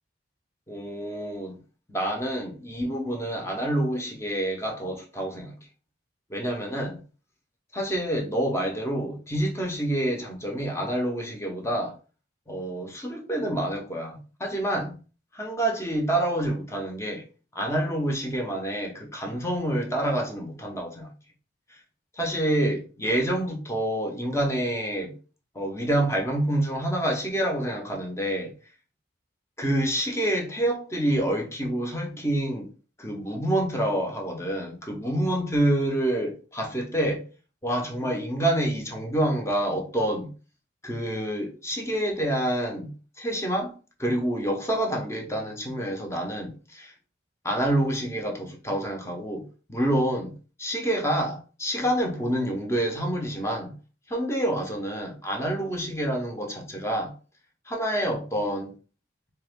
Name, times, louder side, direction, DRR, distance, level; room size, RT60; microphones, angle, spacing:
voice 1, 0.7-1.6 1.9-5.5 6.3-7.0 7.7-11.9 12.5-15.0 15.3-17.2 17.5-21.1 22.2-25.1 25.5-28.5 29.6-32.7 33.0-37.2 37.6-40.3 40.8-42.9 43.2-43.7 44.0-46.9 47.4-50.3 50.6-53.7 54.1-57.1 57.7-58.7, right 1 dB, 15° left, 0.9 m, -27 dB
3.4 x 3.2 x 3.6 m
head